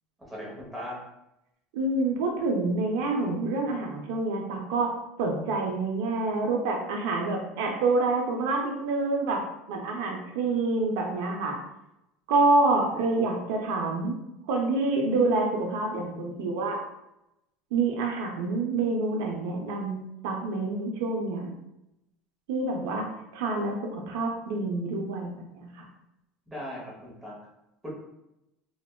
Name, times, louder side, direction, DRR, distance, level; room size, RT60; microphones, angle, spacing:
voice 1, 0.2-0.9 26.5-27.3 27.8-28.0, equal, 10° right, -4 dB, 0.8 m, -38 dB
voice 2, 1.7-4.9 5.2-11.6 12.3-14.2 14.5-16.8 17.7-21.5 22.5-23.1 23.3-25.9, right 3 dB, 80° right, 1 dB, 0.5 m, -27 dB
3.2 x 2.2 x 2.2 m, 0.87 s
cardioid pair, 140°, 0 cm